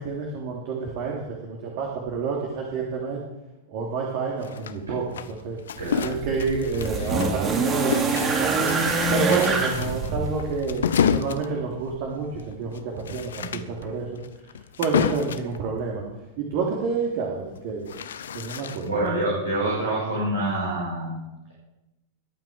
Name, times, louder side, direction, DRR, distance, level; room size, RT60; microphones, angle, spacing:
voice 1, 0.0-3.2 3.7-5.6 6.0-8.7 9.1-14.1 14.8-16.0 16.4-18.0 18.3-18.9, right 4 dB, 45° right, -1 dB, 3.2 m, -29 dB
sound 1, 4.4-7.5 7.9-15.6 17.4-19.1, left 7 dB, 65° left, 0.9 m, -29 dB
sound 2, 5.8-11.0 12.1-12.2, right 3 dB, 30° right, 2.9 m, -25 dB
voice 2, 5.8-6.1 13.4-13.5 18.8-21.5, right 1 dB, 75° right, -7 dB, 7.4 m, -27 dB
22.0 x 8.9 x 5.2 m, 0.94 s
figure-of-eight pair, 90°, 0 cm